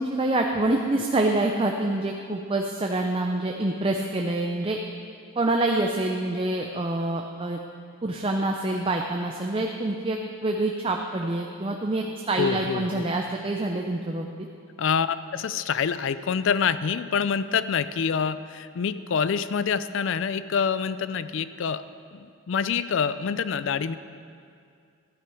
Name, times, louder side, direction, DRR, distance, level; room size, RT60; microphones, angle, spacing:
voice 1, 0.0-4.8 5.4-7.6 8.0-14.3, right 2 dB, 25° right, 2 dB, 0.5 m, -26 dB
voice 2, 12.4-13.1 14.8-21.8 22.1-24.0, left 6 dB, 60° left, 14 dB, 0.4 m, -26 dB
13.0 x 9.2 x 4.8 m, 2.3 s
head